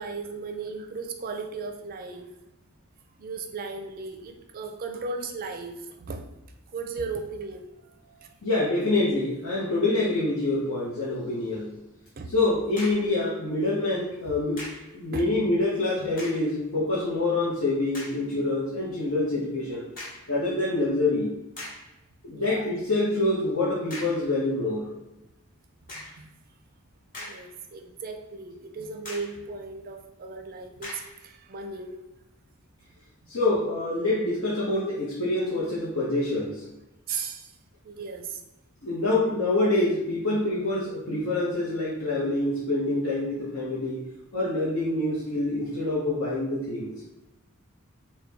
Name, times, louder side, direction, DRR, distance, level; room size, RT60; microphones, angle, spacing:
voice 1, 0.0-2.3 3.2-6.3 6.7-8.3 12.2-12.3 14.3-14.4 15.1-15.3 22.3-22.7 25.9-26.3 27.2-32.0 37.1-37.5 37.8-38.4 42.1-42.3, right 4 dB, 45° right, 4 dB, 0.5 m, -36 dB
voice 2, 8.4-11.8 12.3-14.6 14.9-19.8 20.3-21.4 22.2-24.9 33.3-36.7 38.8-44.1 44.3-47.0, left 2 dB, 65° left, -8 dB, 0.9 m, -26 dB
sound 1, 12.7-13.2 14.6-14.9 16.1-16.5 17.1-17.2 17.9-18.3 20.0-20.3 21.0-21.1 21.6-21.9 23.9-24.3 25.9-26.3 26.9-27.7 28.1-28.2 29.0-29.4 30.8-31.2, left 1 dB, 40° left, 1.1 m, -41 dB
4.5 x 2.2 x 3.4 m, 0.95 s
head